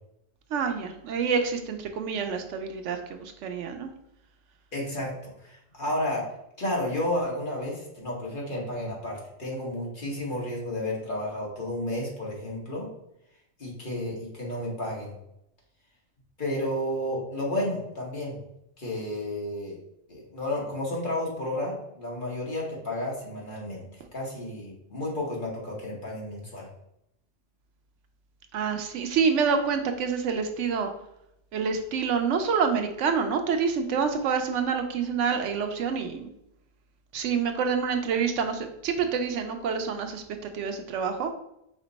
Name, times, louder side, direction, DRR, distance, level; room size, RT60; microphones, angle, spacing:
voice 1, 0.5-3.9 28.5-30.9 31.5-36.3 37.1-40.2 40.5-41.3, right 6 dB, 80° right, 6 dB, 0.9 m, -27 dB
voice 2, 4.7-6.3 6.6-12.9 13.6-15.1 16.4-18.4 18.8-19.8 20.1-26.7, left 1 dB, 45° left, -3 dB, 1.3 m, -32 dB
5.0 x 2.1 x 3.9 m, 0.80 s
omnidirectional pair, 1.2 m